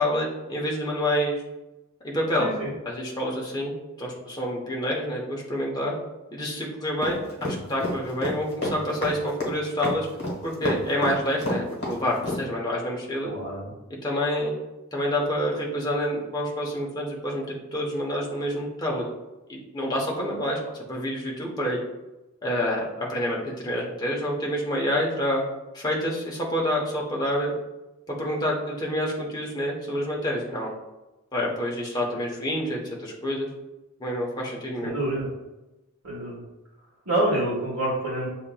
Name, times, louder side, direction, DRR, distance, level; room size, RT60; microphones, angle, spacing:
voice 1, 0.0-1.4 2.0-2.5 2.8-5.9 6.3-10.1 10.4-13.3 13.9-14.5 14.9-19.0 19.5-20.6 20.9-21.8 22.4-25.4 25.7-27.5 28.1-30.7 31.3-33.5 34.0-34.9, equal, 20° left, -3 dB, 0.9 m, -28 dB
voice 2, 2.4-2.7 13.2-13.7 34.8-35.3 36.0-36.4 37.0-38.3, right 1 dB, 70° right, -8 dB, 1.4 m, -27 dB
sound 1, 7.0-12.4, left 1 dB, 45° left, 1.2 m, -29 dB
7.0 x 2.9 x 2.3 m, 1.0 s
head